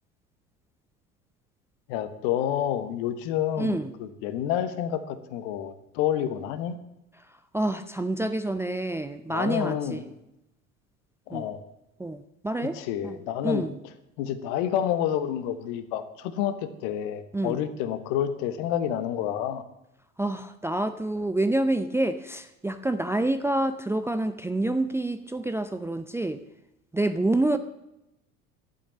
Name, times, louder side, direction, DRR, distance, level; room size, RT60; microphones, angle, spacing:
voice 1, 1.9-6.8 9.3-10.0 11.3-11.6 12.6-13.6 14.2-19.6, left 10 dB, 55° left, 12 dB, 1.4 m, -29 dB
voice 2, 3.6-3.9 7.5-10.0 11.3-11.5 12.0-12.8 13.0-13.2 13.4-13.7 17.3-17.6 20.2-26.4 26.9-27.6, right 1 dB, 5° right, 10 dB, 0.6 m, -27 dB
12.0 x 8.7 x 7.5 m, 0.89 s
figure-of-eight pair, 70°, 42 cm